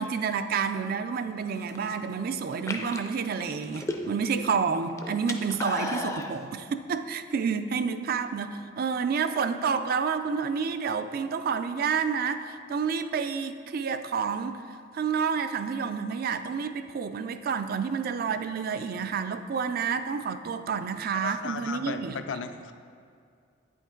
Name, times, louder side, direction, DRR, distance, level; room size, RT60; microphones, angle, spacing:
voice 1, 0.0-14.5 14.9-22.2, right 6 dB, 50° right, 9 dB, 0.3 m, -29 dB
sound 1, 1.5-1.9 2.5-4.4 4.7-6.3, left 2 dB, 15° left, 0.4 m, -34 dB
voice 2, 21.1-22.7, left 5 dB, 75° left, 8 dB, 0.4 m, -35 dB
8.6 x 5.2 x 3.7 m, 2.3 s
head